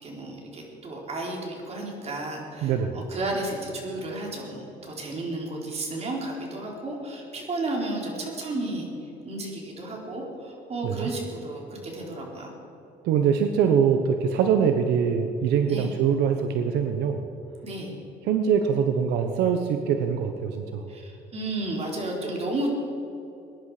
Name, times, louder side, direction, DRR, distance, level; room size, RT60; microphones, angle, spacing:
voice 1, 0.0-8.9 9.2-12.5 15.7-15.9 17.6-17.9 20.9-22.8, right 2 dB, 40° right, -1 dB, 4.1 m, -32 dB
voice 2, 2.6-3.0 10.8-11.1 13.0-17.3 18.2-20.9, right 7 dB, 85° right, 6 dB, 1.0 m, -23 dB
21.5 x 11.0 x 5.0 m, 3.0 s
cardioid pair, 110°, 17 cm